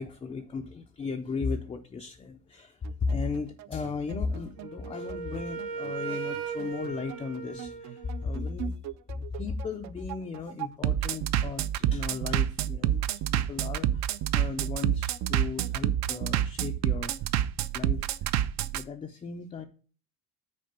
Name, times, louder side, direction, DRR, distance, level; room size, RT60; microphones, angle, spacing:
voice 1, 0.0-8.7 9.1-17.3 17.7-18.3 18.7-19.6, left 4 dB, 15° left, 0.3 m, -36 dB
Bass drum, 2.8-18.8, right 11 dB, 55° right, 0.4 m, -29 dB
Wind instrument woodwind instrument, 4.6-8.4, right 5 dB, 90° right, 1.1 m, -37 dB
6.5 x 4.3 x 6.6 m
cardioid pair, 180°, 35 cm